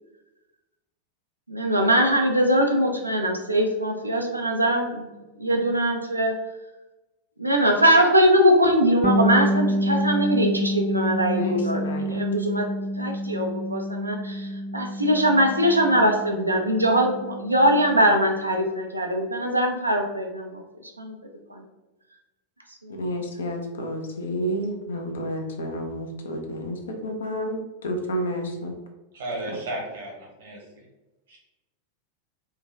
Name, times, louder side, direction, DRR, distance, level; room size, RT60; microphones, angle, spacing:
voice 1, 1.5-5.1 5.4-6.3 7.4-12.7 13.0-20.6 21.0-21.2 22.8-23.0, equal, 85° right, 2 dB, 0.4 m, -22 dB
Bass guitar, 9.0-18.6, equal, 5° right, 0.3 m, -28 dB
voice 2, 11.2-12.2 22.9-28.8, equal, 65° left, 3 dB, 0.5 m, -30 dB
voice 3, 29.1-30.8 31.3-31.4, right 1 dB, 60° right, -2 dB, 1.0 m, -34 dB
3.2 x 2.2 x 3.2 m, 1.1 s
figure-of-eight pair, 90°, 0 cm